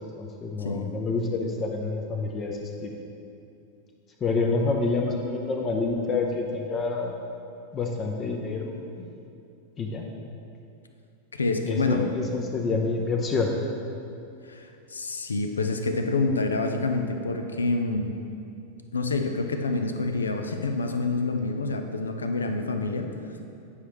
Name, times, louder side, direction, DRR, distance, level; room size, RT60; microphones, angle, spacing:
voice 1, 0.2-3.0 4.2-7.1 7.7-9.1 9.8-10.0 11.7-13.5, left 3 dB, 25° left, 1 dB, 0.6 m, -28 dB
voice 2, 11.3-12.0 14.5-18.1 18.9-23.1, left 3 dB, 75° left, 5 dB, 0.5 m, -27 dB
9.6 x 5.7 x 3.1 m, 2.7 s
figure-of-eight pair, 90°, 0 cm